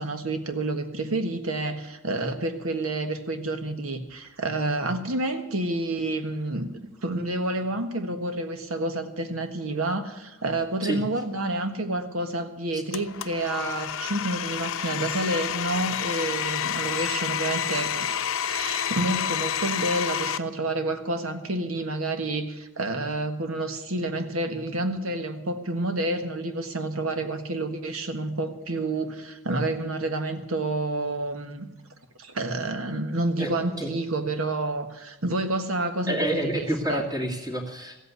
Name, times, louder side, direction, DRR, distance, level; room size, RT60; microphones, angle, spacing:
voice 1, 0.0-18.1 18.4-31.7 32.2-37.0, right 2 dB, 90° right, 7 dB, 1.5 m, -29 dB
Domestic sounds home sounds, 12.9-20.4, left 9 dB, 75° left, 0.6 m, -29 dB
voice 2, 33.4-33.9 36.1-38.0, right 1 dB, 20° right, 1 dB, 2.2 m, -29 dB
15.0 x 8.3 x 9.5 m, 0.98 s
head